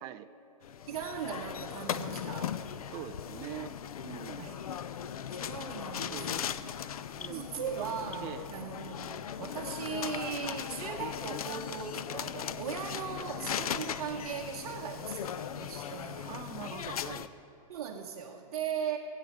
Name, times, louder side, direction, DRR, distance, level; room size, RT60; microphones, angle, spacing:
sound 1, 0.6-17.3, left 9 dB, 85° left, 0.6 m, -38 dB
voice 1, 0.9-2.6 4.4-4.6 5.3-6.7 7.3-16.3 17.7-19.0, right 8 dB, 50° right, 0 dB, 1.1 m, -39 dB
voice 2, 2.9-3.8 4.0-4.5 6.1-6.6 7.2-7.9 8.2-8.5 16.2-17.3, right 12 dB, 20° right, 9 dB, 0.3 m, -43 dB
sound 2, 7.4-13.2, left 3 dB, 65° left, 3.7 m, -57 dB
18.5 x 8.4 x 6.6 m, 3.0 s
hypercardioid pair, 150°, 18 cm